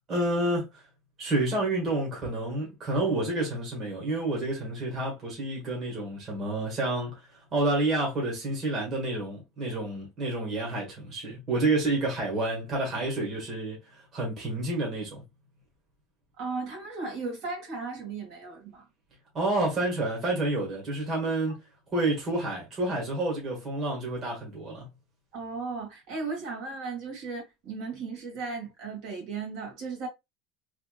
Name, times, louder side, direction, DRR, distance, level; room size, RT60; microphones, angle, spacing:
voice 1, 0.1-0.8 1.2-7.1 7.5-15.2 19.3-21.6 21.9-24.9, right 2 dB, 35° right, 1.6 m, -29 dB
voice 2, 16.4-18.9 25.3-30.1, right 4 dB, 65° right, 1.8 m, -36 dB
3.4 x 2.7 x 2.3 m
cardioid pair, 140°, 0 cm